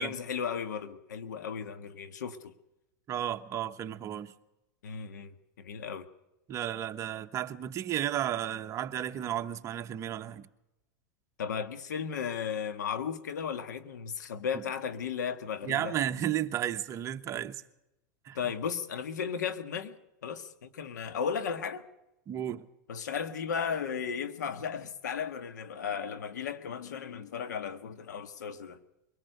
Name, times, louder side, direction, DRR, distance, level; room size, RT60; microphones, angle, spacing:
voice 1, 0.0-2.5 4.8-6.1 11.4-15.9 18.3-20.0 20.2-21.8 22.9-28.8, left 7 dB, 90° left, 1.6 m, -35 dB
voice 2, 3.1-4.3 6.5-10.5 15.7-17.5 18.2-18.4 22.3-22.6, right 11 dB, 35° right, 1.1 m, -33 dB
23.0 x 17.5 x 6.7 m
hypercardioid pair, 120°, 9 cm